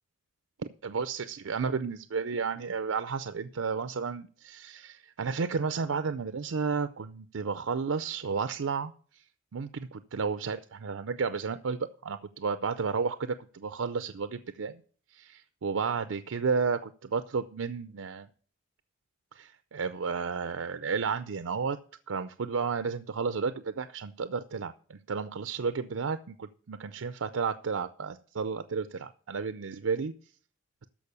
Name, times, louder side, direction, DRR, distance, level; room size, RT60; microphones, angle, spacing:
voice 1, 0.6-9.2 9.5-14.8 15.1-18.3 19.3-21.8 22.1-30.1, right 5 dB, 85° right, 0.5 m, -32 dB
13.5 x 5.2 x 6.8 m
head